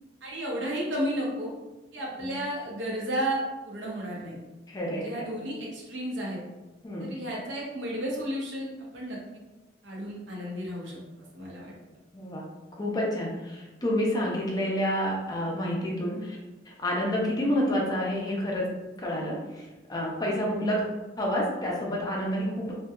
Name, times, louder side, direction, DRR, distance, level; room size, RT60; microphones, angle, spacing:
voice 1, 0.2-1.5 1.9-4.4 4.9-6.4 7.0-9.4 9.8-11.7, equal, 85° right, -3 dB, 0.7 m, -33 dB
voice 2, 4.7-5.2 6.8-7.1 12.1-12.4 12.8-16.4 16.7-18.7 19.0-20.8 21.2-22.7, equal, 20° left, -2 dB, 0.4 m, -29 dB
2.7 x 2.2 x 2.3 m, 1.1 s
head